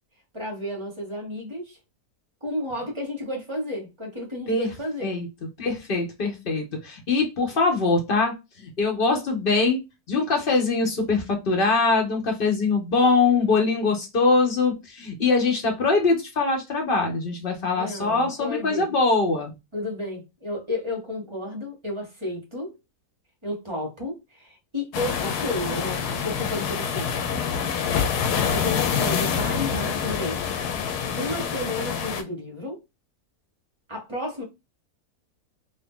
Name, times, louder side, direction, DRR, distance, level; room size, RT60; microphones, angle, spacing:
voice 1, 0.3-1.8 2.4-5.1 17.8-18.9 19.7-22.7 23.4-27.1 28.5-30.4 31.2-32.8 33.9-34.4, left 1 dB, 20° right, 1.1 m, -32 dB
voice 2, 5.6-9.8 10.1-19.6, left 3 dB, 40° left, 1.0 m, -23 dB
sound 1, 24.9-32.2, left 7 dB, 80° left, 1.1 m, -26 dB
2.7 x 2.7 x 3.6 m
omnidirectional pair, 1.7 m